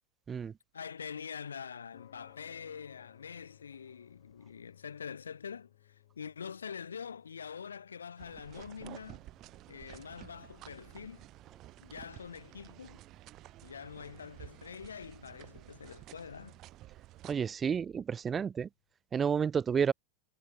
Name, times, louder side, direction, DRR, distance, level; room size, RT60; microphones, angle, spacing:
voice 1, 0.7-9.2 9.7-11.3 11.8-13.0 13.6-16.6, left 7 dB, 70° left, 1.9 m, -45 dB
sound 1, 1.9-18.4, left 15 dB, 55° left, 5.6 m, -65 dB
sound 2, 8.2-17.3, right 16 dB, 35° right, 7.8 m, -52 dB
voice 2, 17.2-18.7 19.1-19.9, right 7 dB, 20° right, 0.3 m, -30 dB
figure-of-eight pair, 90°, 0 cm